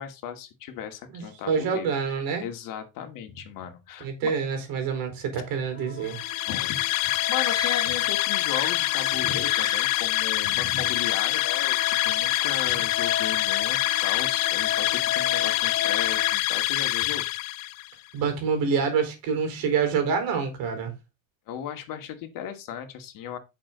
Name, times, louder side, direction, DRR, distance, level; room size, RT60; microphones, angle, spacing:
voice 1, 0.0-1.9 2.4-4.3 6.5-17.3 21.5-23.4, left 9 dB, 50° left, 2.3 m, -36 dB
voice 2, 1.1-2.4 4.0-6.2 18.1-20.9, right 6 dB, 55° right, 4.6 m, -27 dB
sound 1, 5.5-16.4, left 9 dB, 30° left, 1.2 m, -35 dB
sound 2, 6.0-17.9, left 19 dB, 85° left, 0.6 m, -25 dB
sound 3, 7.4-8.2 8.4-9.2 9.5-10.0, left 2 dB, 10° left, 1.9 m, -37 dB
8.9 x 6.7 x 4.0 m
supercardioid pair, 100°, 40 cm